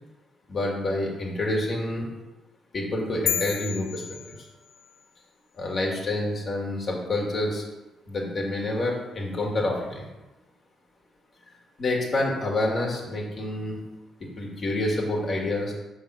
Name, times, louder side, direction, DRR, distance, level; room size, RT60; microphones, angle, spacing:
voice 1, 0.5-2.1 2.7-4.0 4.3-4.5 5.6-7.6 8.1-10.1 11.8-13.8 14.4-15.7, left 1 dB, 45° left, -1 dB, 1.8 m, -28 dB
sound 1, 3.3-5.0, left 8 dB, 70° left, 0.5 m, -31 dB
6.1 x 3.7 x 5.4 m, 1.0 s
cardioid pair, 90°, 0 cm